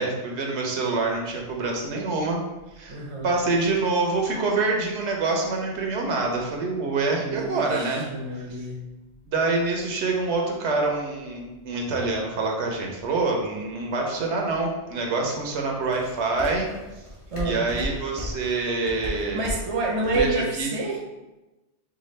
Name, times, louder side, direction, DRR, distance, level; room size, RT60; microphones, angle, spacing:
voice 1, 0.0-2.4 2.8-8.1 9.3-16.7 17.4-19.4 20.1-20.7, right 3 dB, 75° right, 1 dB, 1.0 m, -26 dB
sound 1, 0.9-20.4, equal, 30° left, 0.9 m, -42 dB
voice 2, 2.9-3.3 7.2-8.8 17.3-17.6 19.3-21.0, right 2 dB, 35° right, -1 dB, 0.6 m, -28 dB
4.8 x 2.3 x 3.1 m, 1.0 s
omnidirectional pair, 1.2 m